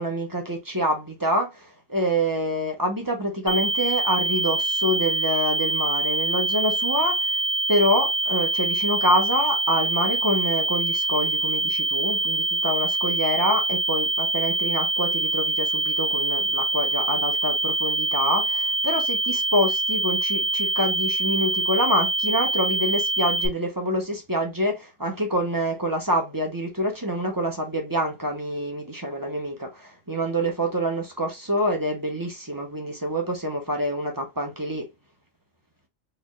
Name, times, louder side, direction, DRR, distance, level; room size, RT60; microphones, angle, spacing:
voice 1, 0.0-7.3 7.7-34.9, equal, 15° right, 1.0 m, -26 dB
sound 1, 3.5-23.5, right 2 dB, 55° left, 1.1 m, -25 dB
4.0 x 3.3 x 2.3 m
omnidirectional pair, 1.4 m